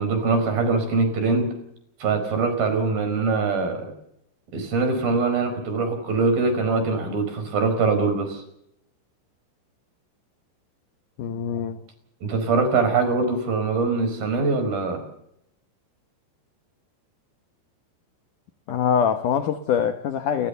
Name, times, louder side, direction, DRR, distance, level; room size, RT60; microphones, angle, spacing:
voice 1, 0.0-1.5 2.0-3.9 4.5-8.4 12.2-15.0, right 4 dB, 50° right, 6.4 m, -23 dB
voice 2, 11.2-11.8 18.7-20.5, left 8 dB, 85° left, 1.8 m, -23 dB
30.0 x 14.5 x 6.9 m
omnidirectional pair, 5.4 m